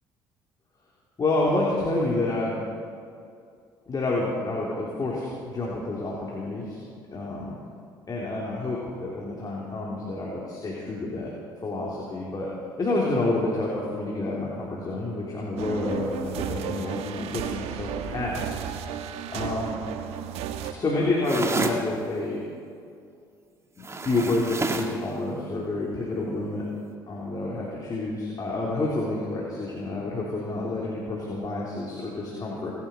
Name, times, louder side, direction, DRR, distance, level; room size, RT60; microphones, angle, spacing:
voice 1, 1.2-2.6 3.9-6.8 7.1-7.6 8.1-11.3 11.6-12.5 12.8-18.5 19.3-19.7 20.7-22.4 23.8-26.6 27.1-32.7, left 2 dB, 35° left, -4 dB, 3.5 m, -29 dB
sound 1, 15.6-20.7, right 9 dB, 70° right, 1.2 m, -34 dB
sound 2, 21.2-21.9 23.8-25.0, right 3 dB, 25° right, 1.8 m, -29 dB
28.5 x 11.0 x 4.6 m, 2.4 s
hypercardioid pair, 60°, 11 cm